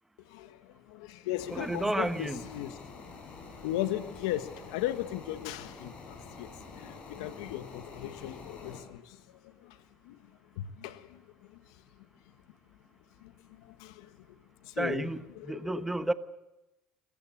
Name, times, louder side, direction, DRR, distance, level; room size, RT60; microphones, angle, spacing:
voice 1, 0.3-2.8 3.6-6.5 6.7-9.2 9.4-9.8 10.0-10.2 10.5-11.2 11.5-11.6 13.2-13.3 13.6-14.2 14.6-15.1 15.3-15.8, left 13 dB, 85° left, 1.4 m, -37 dB
sound 1, 1.4-8.8, left 4 dB, 40° left, 7.7 m, -47 dB
voice 2, 1.5-2.4 14.8-16.1, right 2 dB, 10° right, 1.1 m, -31 dB
28.0 x 14.5 x 8.6 m
supercardioid pair, 90°, 3 cm